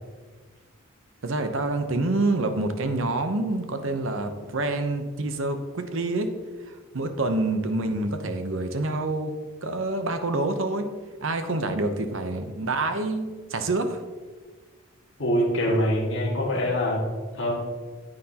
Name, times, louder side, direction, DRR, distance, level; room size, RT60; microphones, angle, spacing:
voice 1, 1.2-6.3 6.9-9.3 9.6-10.9 11.2-14.0, right 2 dB, 60° right, 7 dB, 0.8 m, -27 dB
voice 2, 15.2-17.0 17.3-17.6, equal, 55° left, -4 dB, 2.0 m, -24 dB
9.5 x 9.1 x 2.9 m, 1.4 s
head